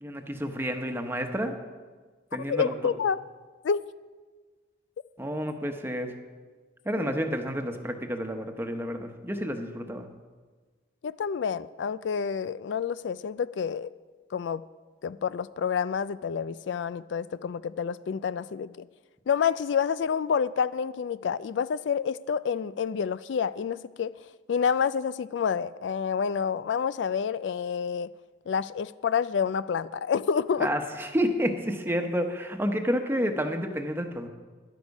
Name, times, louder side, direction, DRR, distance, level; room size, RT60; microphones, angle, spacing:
voice 1, 0.0-1.6 2.3-2.7 5.2-6.1 6.8-10.1 30.6-34.3, equal, 15° right, 5 dB, 1.0 m, -30 dB
voice 2, 2.5-3.2 3.6-3.8 7.0-7.1 11.0-13.9 14.3-14.6 15.0-18.9 19.3-24.1 24.5-28.1 28.5-30.7, left 6 dB, 75° left, 16 dB, 0.3 m, -28 dB
13.0 x 11.0 x 5.3 m, 1.4 s
head